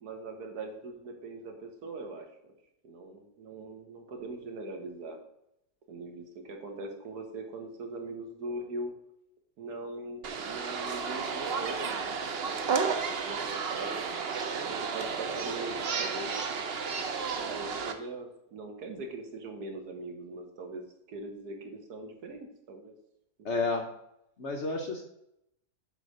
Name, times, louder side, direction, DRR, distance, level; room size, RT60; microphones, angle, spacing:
voice 1, 0.0-2.6 2.8-5.2 5.9-8.9 9.6-14.1 14.6-16.4 17.3-23.0, right 2 dB, 80° right, 4 dB, 1.7 m, -41 dB
sound 1, 10.2-17.9, right 5 dB, 50° right, 0.8 m, -32 dB
voice 2, 23.4-23.9 24.4-25.0, left 3 dB, 50° left, 3 dB, 1.0 m, -30 dB
8.1 x 3.9 x 6.5 m, 0.81 s
omnidirectional pair, 1.7 m